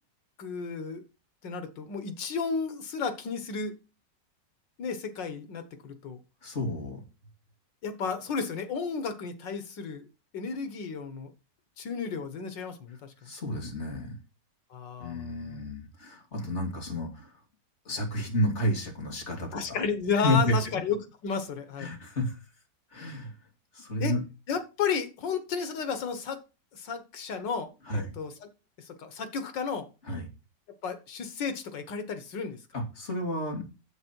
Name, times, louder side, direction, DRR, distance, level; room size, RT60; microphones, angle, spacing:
voice 1, 0.4-1.0 1.4-3.8 4.8-6.2 7.8-10.1 10.3-11.3 11.8-13.3 14.7-15.6 19.5-21.9 24.0-24.2 24.5-26.4 26.7-28.5 28.8-29.9 30.8-32.6, left 5 dB, 90° left, 9 dB, 2.0 m, -33 dB
voice 2, 6.4-7.0 13.2-14.1 15.0-17.3 17.8-19.6 20.1-20.6 21.8-22.4 22.9-23.3 23.7-24.2 27.9-28.1 30.1-30.3 32.7-33.6, left 1 dB, 40° left, 1 dB, 3.0 m, -30 dB
9.5 x 7.8 x 4.6 m, 0.31 s
omnidirectional pair, 1.9 m